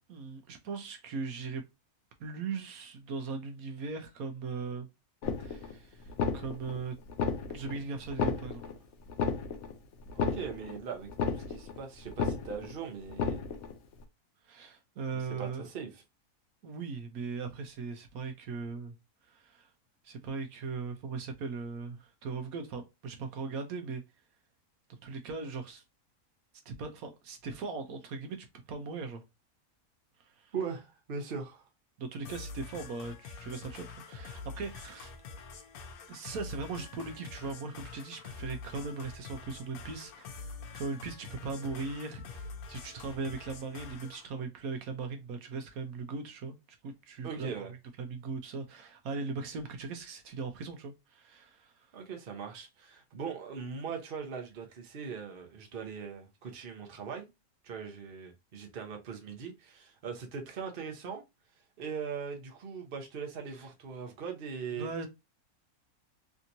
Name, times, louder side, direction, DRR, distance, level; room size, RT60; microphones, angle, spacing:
voice 1, 0.1-1.6 2.2-4.9 5.4-7.0 7.5-8.6 14.4-15.7 16.6-19.0 19.2-19.7 20.0-24.0 25.0-25.8 26.7-29.2 30.2-30.5 32.0-35.1 36.1-46.6 46.8-47.7 48.0-51.9 63.5-63.7 64.7-65.1, right 4 dB, 75° right, 1.1 m, -39 dB
sound 1, 5.2-5.8 6.1-6.8 7.1-7.8 8.1-8.8 9.1-9.8 10.1-10.8 11.1-11.8 12.1-12.8 13.1-13.8, left 5 dB, 60° left, 0.9 m, -32 dB
voice 2, 10.1-13.4 15.1-15.9 30.5-31.6 47.2-47.7 51.9-57.3 57.6-61.2 61.8-64.9, right 6 dB, 45° right, 0.9 m, -40 dB
sound 2, 32.2-44.2, left 4 dB, 85° left, 1.2 m, -46 dB
3.4 x 2.8 x 2.5 m
omnidirectional pair, 1.5 m